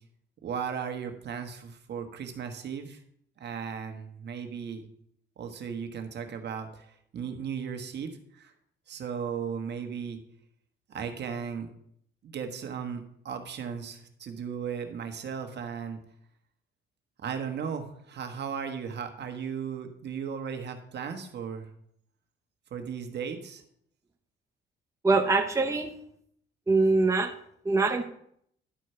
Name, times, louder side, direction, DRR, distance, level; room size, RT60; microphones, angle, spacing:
voice 1, 0.4-3.0 3.4-4.8 5.4-8.5 8.9-10.2 10.9-11.7 12.2-16.0 17.2-21.7 22.7-23.6, right 7 dB, 60° right, 5 dB, 1.4 m, -36 dB
voice 2, 25.0-25.9 26.7-27.3 27.6-28.0, right 3 dB, 15° right, 4 dB, 0.8 m, -23 dB
11.5 x 4.6 x 5.6 m, 0.69 s
cardioid pair, 90°, 20 cm